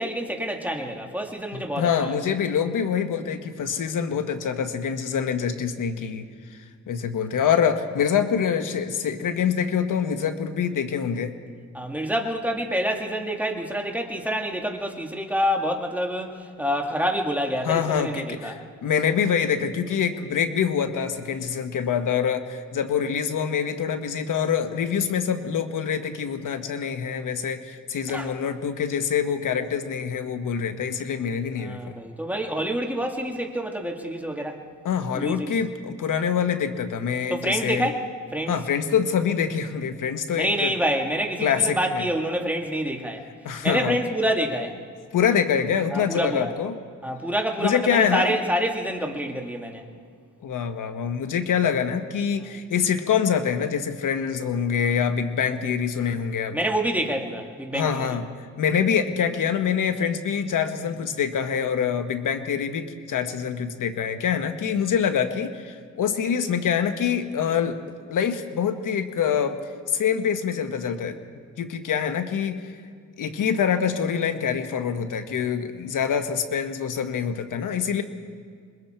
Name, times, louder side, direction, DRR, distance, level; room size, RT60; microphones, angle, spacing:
voice 1, 0.0-2.1 11.7-18.5 28.1-28.3 31.6-34.6 35.1-35.6 37.3-38.0 38.3-38.6 40.4-43.2 43.6-44.8 45.9-46.5 47.0-49.8 56.5-58.1, equal, 5° right, 1 dB, 2.3 m, -27 dB
voice 2, 1.5-6.6 6.9-11.3 17.6-31.9 34.8-37.9 38.5-40.7 41.4-42.0 43.4-44.0 45.1-46.8 47.6-48.3 50.4-56.6 57.7-58.2 58.6-67.8 68.1-69.6 69.9-71.2 71.6-72.6 73.2-78.0, left 7 dB, 85° left, 8 dB, 1.2 m, -25 dB
26.5 x 22.5 x 4.5 m, 2.1 s
cardioid pair, 80°, 31 cm